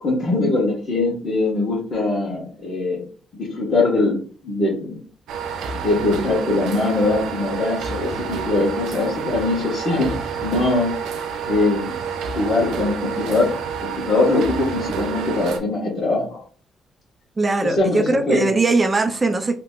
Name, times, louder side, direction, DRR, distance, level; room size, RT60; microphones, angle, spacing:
voice 1, 0.0-3.0 3.3-5.0 5.8-10.9 11.5-12.0 12.3-13.5 13.8-16.4 17.6-18.5, left 2 dB, 45° left, 1.3 m, -22 dB
sound 1, 5.3-15.6, right 6 dB, 85° right, 0.5 m, -29 dB
voice 2, 17.4-19.6, right 3 dB, 25° right, 0.5 m, -20 dB
2.9 x 2.1 x 3.7 m
cardioid pair, 90°, 0 cm